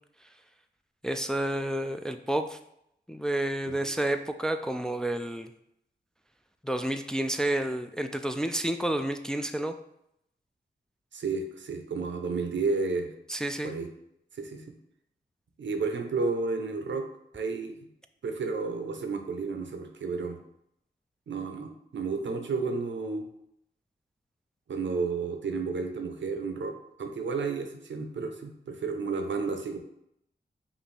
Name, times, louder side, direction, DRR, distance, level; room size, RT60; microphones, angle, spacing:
voice 1, 1.0-2.6 3.1-5.5 6.6-9.7 13.3-13.7, right 1 dB, 5° left, 7 dB, 0.3 m, -30 dB
voice 2, 11.1-13.1 13.6-13.9 14.4-14.6 15.6-17.1 17.3-17.8 18.2-20.4 21.3-23.3 24.7-29.8, right 4 dB, 80° right, 5 dB, 0.6 m, -31 dB
5.2 x 2.6 x 3.3 m, 0.76 s
cardioid pair, 45°, 19 cm